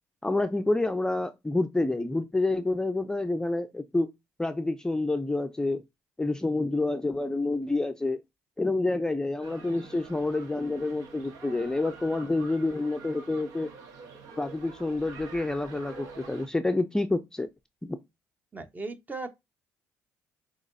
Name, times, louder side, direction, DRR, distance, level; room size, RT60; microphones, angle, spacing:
voice 1, 0.2-4.1 4.4-5.8 6.2-8.2 8.6-13.7 14.4-17.5 17.8-18.0, left 2 dB, 10° left, 0.5 m, -28 dB
sound 1, 9.4-16.5, right 4 dB, 75° right, 1.0 m, -47 dB
voice 2, 18.5-19.3, right 3 dB, 25° right, 1.0 m, -37 dB
6.0 x 3.0 x 2.6 m
supercardioid pair, 70°, 6 cm